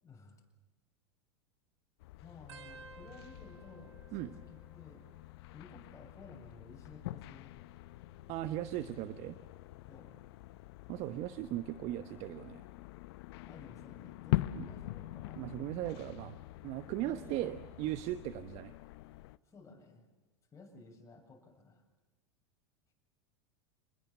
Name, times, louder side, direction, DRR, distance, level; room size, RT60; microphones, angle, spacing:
voice 1, 0.0-0.4 2.2-5.1 5.5-7.5 9.9-10.1 13.4-15.5 15.8-16.0 17.0-17.6 19.5-20.1 20.5-21.8, left 3 dB, 20° left, 2 dB, 7.7 m, -55 dB
sound 1, 2.0-19.4, left 17 dB, 65° left, 0.8 m, -43 dB
sound 2, 2.5-5.7 6.0-6.6 7.5-9.0 9.6-10.0 11.2-11.6 13.1-13.2, right 6 dB, 75° right, 2.1 m, -58 dB
voice 2, 8.3-9.4 10.9-12.6 14.5-14.7 15.4-16.3 16.6-18.7, right 14 dB, 50° right, 11 dB, 1.1 m, -38 dB
28.5 x 21.0 x 7.3 m, 1.2 s
hypercardioid pair, 95°, 15 cm